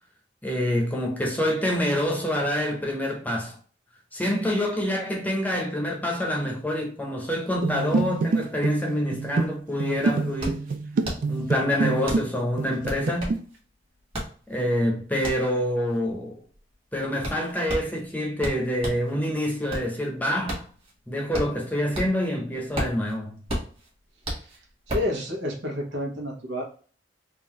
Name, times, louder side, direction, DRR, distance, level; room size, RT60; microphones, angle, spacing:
voice 1, 0.4-3.5 4.1-10.6 11.3-13.3 14.5-16.3 16.9-20.6 21.1-23.4, equal, 10° left, 0.8 m, -26 dB
sound 1, 7.6-12.3 12.6-13.4, right 4 dB, 50° right, 0.3 m, -27 dB
sound 2, 10.4-19.1 19.5-22.3 22.6-25.2, right 1 dB, 30° right, 1.5 m, -34 dB
voice 2, 24.9-26.6, left 1 dB, 85° right, 1.3 m, -29 dB
3.8 x 2.6 x 3.0 m
head